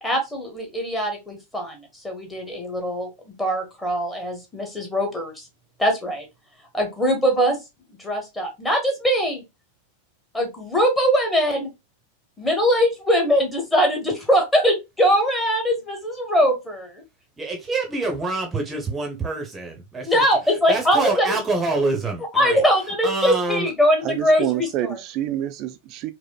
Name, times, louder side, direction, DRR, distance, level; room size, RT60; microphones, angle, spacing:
voice 1, 0.0-5.4 5.8-6.2 6.7-7.6 8.0-9.4 10.3-11.7 12.4-17.0 20.0-21.4 22.3-25.0, equal, 10° left, 1.3 m, -22 dB
voice 2, 17.4-22.6 23.0-23.7, right 3 dB, 15° right, 0.8 m, -26 dB
voice 3, 24.0-26.1, right 12 dB, 40° right, 0.4 m, -27 dB
4.8 x 2.1 x 2.2 m
figure-of-eight pair, 90°, 0 cm